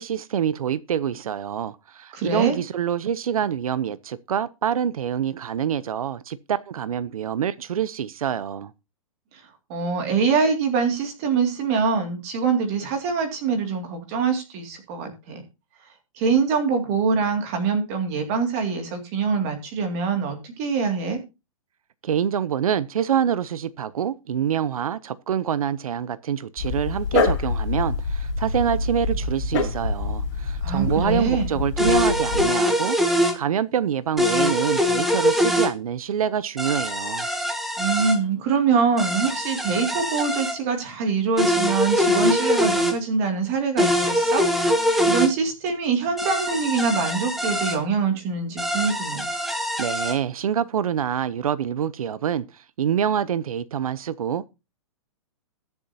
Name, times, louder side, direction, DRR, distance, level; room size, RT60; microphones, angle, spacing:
voice 1, 0.0-8.7 22.0-37.3 49.8-54.5, right 8 dB, 90° right, 0.7 m, -26 dB
voice 2, 2.1-2.6 9.7-15.4 16.1-21.2 30.6-31.6 37.8-44.5 44.7-49.2, right 5 dB, 25° right, 2.3 m, -24 dB
Dog, 26.6-32.5, left 3 dB, 35° left, 6.8 m, -26 dB
sound 1, 31.8-33.4 34.2-35.7 36.6-38.2 39.0-40.6 41.4-43.0 43.8-45.3 46.2-47.8 48.6-50.2, equal, ahead, 0.7 m, -23 dB
21.5 x 7.2 x 2.8 m
hypercardioid pair, 175°, 18 cm